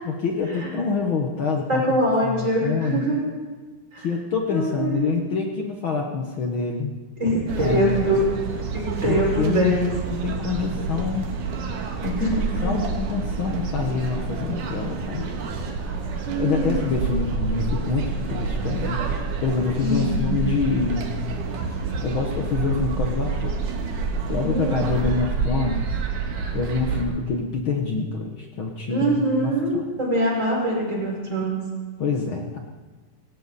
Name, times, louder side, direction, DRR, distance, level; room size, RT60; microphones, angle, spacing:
voice 1, 0.0-3.1 4.0-6.9 7.6-8.0 9.1-9.8 10.1-11.3 12.0-12.3 12.6-15.2 16.4-19.0 19.4-21.2 22.0-23.7 24.3-25.8 26.5-29.8 32.0-32.6, left 5 dB, 70° left, 1 dB, 1.2 m, -26 dB
voice 2, 1.7-3.3 3.9-4.1 4.5-5.3 7.2-8.3 8.7-10.0 12.2-12.7 16.2-16.9 19.7-20.6 24.4-25.0 28.9-31.7, right 1 dB, 20° right, -4 dB, 5.8 m, -24 dB
sound 1, 7.5-27.0, right 4 dB, 65° right, 3.0 m, -28 dB
18.5 x 18.0 x 4.1 m, 1.4 s
omnidirectional pair, 3.9 m